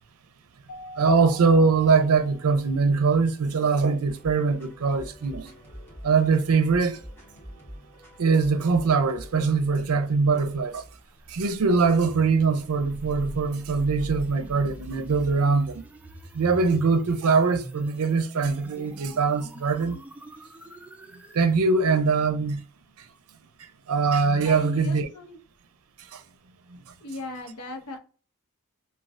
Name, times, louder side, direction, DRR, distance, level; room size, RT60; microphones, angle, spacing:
Keyboard (musical), 0.7-2.9, equal, 40° left, 0.8 m, -45 dB
voice 1, 1.0-5.5 6.0-7.0 8.2-10.8 11.3-15.8 16.3-20.0 21.3-22.6 23.9-25.1 26.1-26.2 26.7-26.8, right 4 dB, 75° right, 0.5 m, -22 dB
sound 1, 4.1-9.3, equal, 10° left, 1.1 m, -45 dB
sound 2, 10.1-21.6, right 1 dB, 5° right, 0.3 m, -43 dB
voice 2, 24.4-25.4 27.0-28.0, left 2 dB, 85° left, 0.7 m, -37 dB
3.3 x 2.2 x 2.4 m
head